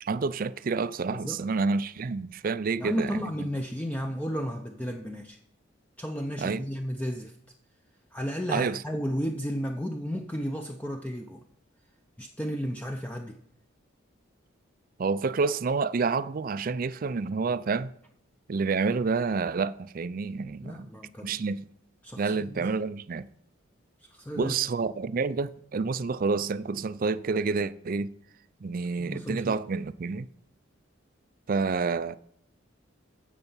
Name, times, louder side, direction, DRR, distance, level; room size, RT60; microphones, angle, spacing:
voice 1, 0.0-3.5 6.4-6.6 8.5-8.8 15.0-17.9 18.5-20.9 21.2-21.6 22.2-23.3 24.3-28.1 28.6-30.3 31.5-32.2, right 4 dB, 45° right, 0.4 m, -28 dB
voice 2, 1.1-1.4 2.8-5.4 6.0-7.3 8.1-11.4 12.2-13.4 20.5-21.4 22.0-22.7 24.0-24.5 29.0-29.6, equal, 10° left, 0.6 m, -33 dB
15.0 x 5.5 x 5.6 m
head